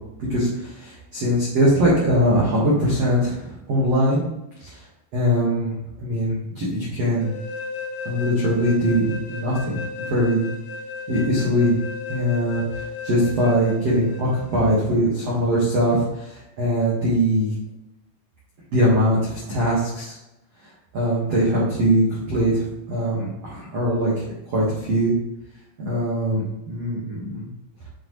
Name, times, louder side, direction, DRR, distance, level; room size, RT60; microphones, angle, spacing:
voice 1, 0.3-4.2 4.6-4.8 5.1-7.3 8.0-9.8 10.1-10.5 11.1-11.8 12.1-12.6 13.0-17.5 18.7-20.1 20.9-25.1 25.8-27.5, equal, 80° right, -7 dB, 1.4 m, -21 dB
sound 1, 7.2-14.8, left 4 dB, 85° left, 4.3 m, -35 dB
10.5 x 4.7 x 3.2 m, 0.88 s
omnidirectional pair, 5.8 m